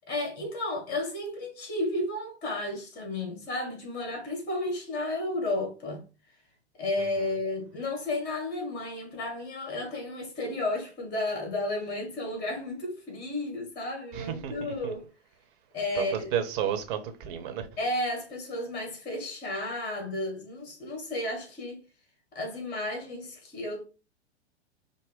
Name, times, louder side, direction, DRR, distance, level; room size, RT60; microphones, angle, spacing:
voice 1, 0.1-6.0 6.8-15.1 15.7-16.3 17.8-21.8 22.3-23.8, left 2 dB, 30° left, 2.1 m, -32 dB
voice 2, 14.1-14.9 15.9-17.7, right 9 dB, 50° right, 1.0 m, -32 dB
5.3 x 2.1 x 3.5 m
hypercardioid pair, 110°, 33 cm